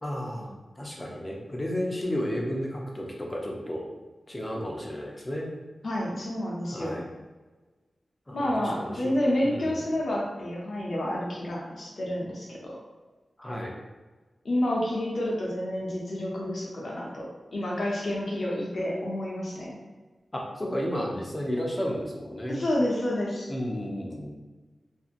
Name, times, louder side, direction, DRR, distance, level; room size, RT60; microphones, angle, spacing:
voice 1, 0.0-3.9 4.3-5.5 6.7-7.1 8.3-8.5 8.8-9.1 9.4-9.9 13.4-13.7 20.3-22.6 23.5-24.3, equal, 20° left, -1 dB, 0.6 m, -32 dB
voice 2, 5.8-7.0 8.3-12.7 14.4-19.7 22.5-23.5, left 1 dB, 65° left, -4 dB, 0.6 m, -29 dB
2.8 x 2.5 x 2.4 m, 1.3 s
wide cardioid pair, 100°, 0 cm